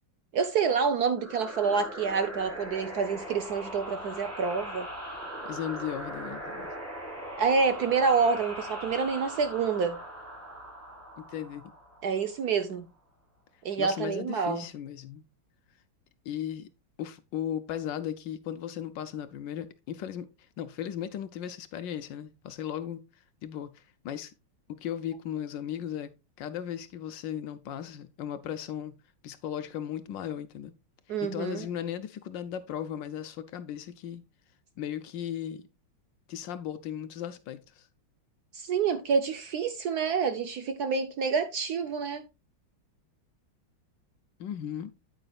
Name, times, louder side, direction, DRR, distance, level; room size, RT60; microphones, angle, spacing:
voice 1, 0.3-4.9 7.4-10.0 12.0-12.9 13.6-14.7 31.1-31.7 38.5-42.3, right 5 dB, 65° right, 1.0 m, -27 dB
sound 1, 1.2-12.5, right 1 dB, 5° right, 3.3 m, -40 dB
voice 2, 5.4-6.7 11.2-11.7 13.8-15.2 16.3-16.7 17.0-20.3 20.6-23.0 23.4-24.3 24.7-28.9 29.2-30.7 31.2-34.2 34.8-35.6 36.3-37.9 44.4-44.9, left 10 dB, 70° left, 1.2 m, -36 dB
9.2 x 8.8 x 2.3 m
omnidirectional pair, 2.3 m